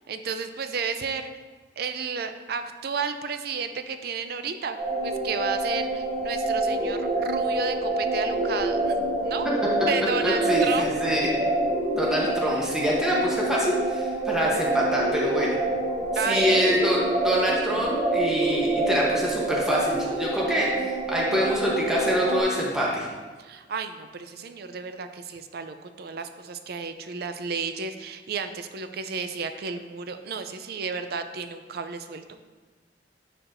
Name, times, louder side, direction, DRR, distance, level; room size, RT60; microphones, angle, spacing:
voice 1, 0.1-1.3 1.8-9.5 9.9-10.9 12.4-12.7 16.1-16.6 23.4-32.4, right 5 dB, 60° right, 8 dB, 0.4 m, -32 dB
sound 1, 4.8-22.4, right 2 dB, 35° right, 1.8 m, -27 dB
voice 2, 10.2-11.3 11.9-15.6 16.3-23.1, equal, 5° right, -5 dB, 1.0 m, -25 dB
10.0 x 4.4 x 2.6 m, 1.4 s
head